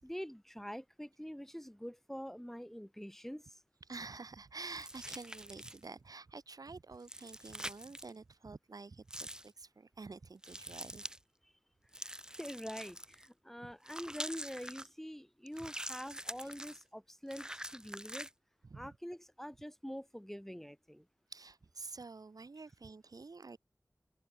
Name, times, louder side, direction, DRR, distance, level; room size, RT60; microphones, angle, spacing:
voice 1, 0.0-3.6 12.3-18.3 18.7-21.1, equal, 5° left, 7.8 m, -45 dB
voice 2, 3.9-11.0 16.4-16.5 18.6-18.9 21.3-23.6, right 4 dB, 70° right, 3.3 m, -49 dB
sound 1, 4.6-5.9 7.0-8.1 9.1-9.5 10.4-11.2 11.9-13.3 13.8-14.9 15.5-16.8 17.3-18.3, right 1 dB, 10° right, 2.8 m, -45 dB
cardioid pair, 45°, 7 cm